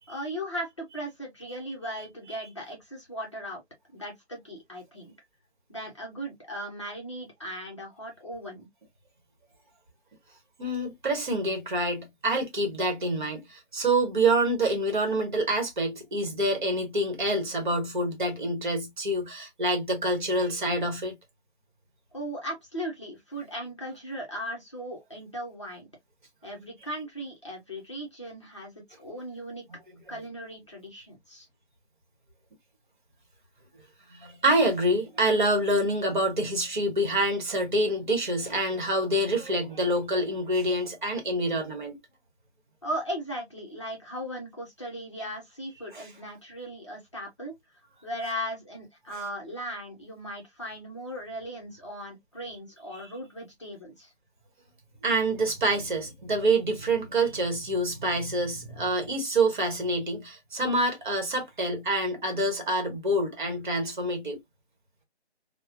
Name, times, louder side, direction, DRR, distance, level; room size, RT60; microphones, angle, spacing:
voice 1, 0.1-3.6 3.9-5.1 5.7-8.7 22.1-25.9 26.4-29.6 30.1-31.5 42.8-47.5 48.0-54.1, equal, 25° left, 0.6 m, -37 dB
voice 2, 10.6-21.1 34.1-42.0 45.9-46.1 52.9-53.1 55.0-64.4, right 1 dB, 45° right, 1.0 m, -27 dB
3.1 x 2.0 x 2.3 m
hypercardioid pair, 170°, 34 cm